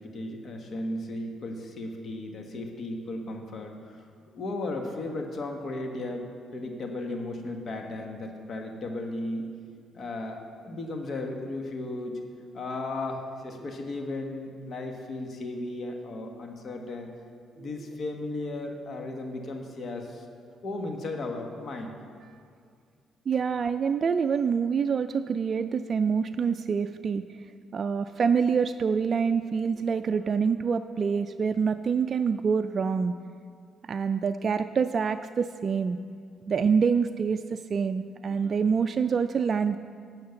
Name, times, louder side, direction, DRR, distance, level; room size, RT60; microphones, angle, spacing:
voice 1, 0.0-4.1 4.3-6.3 6.5-9.5 9.9-12.2 12.5-17.1 17.6-20.2 20.6-21.9, left 2 dB, 55° left, 3 dB, 1.3 m, -35 dB
voice 2, 23.3-27.2 27.7-33.1 33.8-36.0 36.5-39.8, right 6 dB, 45° right, 8 dB, 0.3 m, -26 dB
10.5 x 6.5 x 6.9 m, 2.2 s
cardioid pair, 90°, 0 cm